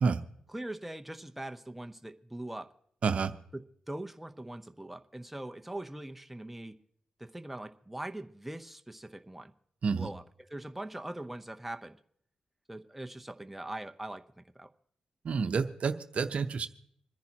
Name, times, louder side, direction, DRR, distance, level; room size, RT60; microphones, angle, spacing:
voice 1, 0.5-2.7 3.5-6.8 7.2-9.5 10.0-10.2 10.5-12.0 12.7-14.7, right 1 dB, 10° right, 0.8 m, -42 dB
voice 2, 3.0-3.3 9.8-10.1 15.2-16.7, right 5 dB, 70° right, 0.7 m, -29 dB
26.5 x 10.5 x 2.9 m
cardioid pair, 60°, 2 cm